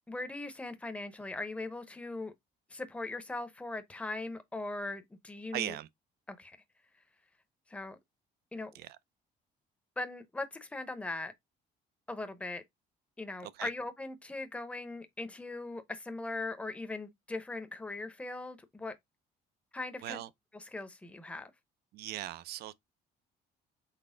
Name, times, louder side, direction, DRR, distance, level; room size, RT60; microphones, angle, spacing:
voice 1, 0.1-2.3 2.7-5.8 6.3-6.6 7.7-8.0 8.5-8.7 10.0-11.3 12.1-12.6 13.2-18.9 19.7-20.2 20.5-21.5, left 2 dB, 5° left, 0.7 m, -40 dB
voice 2, 5.5-5.9 8.7-9.0 13.4-13.7 20.0-20.3 21.9-22.7, right 14 dB, 70° right, 0.5 m, -39 dB
4.2 x 3.2 x 3.7 m
cardioid pair, 110°, 17 cm